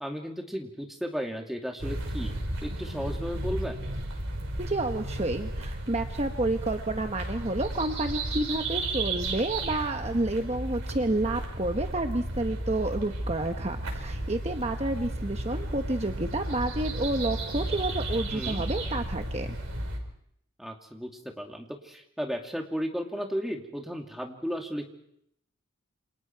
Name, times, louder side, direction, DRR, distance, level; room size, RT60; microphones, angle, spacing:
voice 1, 0.0-2.3 2.6-3.9 18.3-18.6 20.6-21.1 21.4-24.9, equal, ahead, 1 dB, 2.6 m, -34 dB
sound 1, 1.8-20.0, right 1 dB, 85° right, 5.2 m, -34 dB
voice 2, 4.6-19.5, right 2 dB, 30° right, 5 dB, 1.1 m, -30 dB
28.5 x 27.0 x 4.7 m, 0.73 s
head